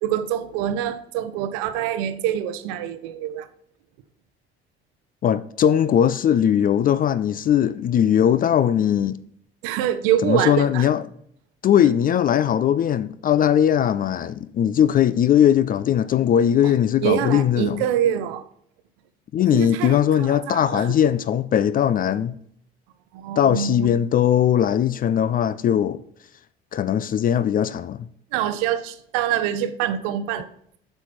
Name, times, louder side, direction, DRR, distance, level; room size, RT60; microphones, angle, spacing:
voice 1, 0.0-3.5 9.6-10.9 16.6-16.7 17.0-18.5 19.5-21.0 23.1-23.9 28.3-30.5, right 10 dB, 60° right, 0.8 m, -25 dB
voice 2, 5.2-9.2 10.2-11.0 11.6-17.8 19.3-22.4 23.4-26.0 26.7-28.1, left 9 dB, 30° left, 0.4 m, -19 dB
7.8 x 5.9 x 4.4 m
figure-of-eight pair, 55°, 30 cm